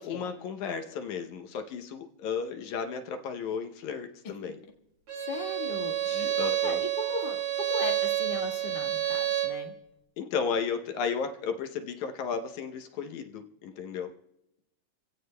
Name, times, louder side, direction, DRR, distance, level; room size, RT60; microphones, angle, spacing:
voice 1, 0.0-4.6 6.1-6.8 10.2-14.1, left 6 dB, 75° left, 5 dB, 2.1 m, -34 dB
Bowed string instrument, 5.1-9.6, right 12 dB, 55° right, 3.6 m, -29 dB
voice 2, 5.3-9.7, left 3 dB, 50° left, 1 dB, 0.6 m, -38 dB
29.0 x 16.0 x 2.2 m, 0.87 s
omnidirectional pair, 3.6 m